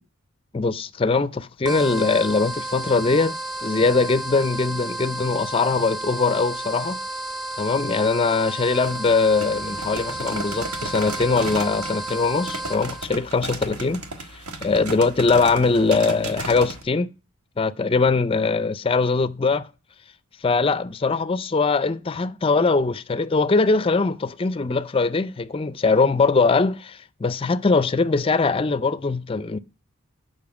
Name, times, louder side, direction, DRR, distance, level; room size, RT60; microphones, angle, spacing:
voice 1, 0.5-7.0 7.6-14.0 14.3-17.1 17.6-19.7 20.4-29.6, left 4 dB, 25° left, 0.3 m, -21 dB
sound 1, 1.6-13.1, right 2 dB, 20° right, 0.7 m, -32 dB
sound 2, 8.6-16.8, right 2 dB, 90° right, 1.4 m, -35 dB
7.0 x 5.5 x 7.0 m
head